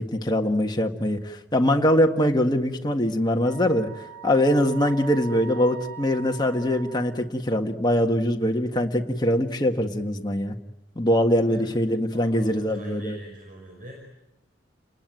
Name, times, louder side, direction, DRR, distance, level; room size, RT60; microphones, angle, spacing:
voice 1, 0.0-3.9 4.2-10.6 11.0-13.2, equal, 25° left, 3 dB, 1.7 m, -23 dB
Wind instrument woodwind instrument, 3.4-7.3, right 8 dB, 75° right, 3.7 m, -42 dB
voice 2, 11.4-11.8 12.1-13.9, equal, 50° right, 0 dB, 5.5 m, -43 dB
30.0 x 20.0 x 9.3 m, 0.96 s
head